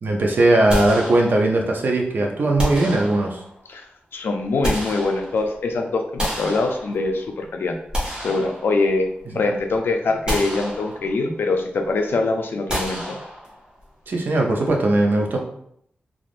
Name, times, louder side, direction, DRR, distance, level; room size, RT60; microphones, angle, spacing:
voice 1, 0.0-3.4 14.1-15.4, right 2 dB, 65° right, 1 dB, 0.6 m, -19 dB
sound 1, 0.7-1.7 2.6-3.6 4.3-5.6 6.2-7.3 7.7-9.2 9.6-9.7 10.3-11.3 12.7-13.8, equal, 25° right, 1.0 m, -30 dB
voice 2, 4.1-7.8 8.2-13.2, left 3 dB, 90° left, 4 dB, 0.4 m, -23 dB
3.4 x 2.4 x 2.4 m, 0.69 s
wide cardioid pair, 150°, 4 cm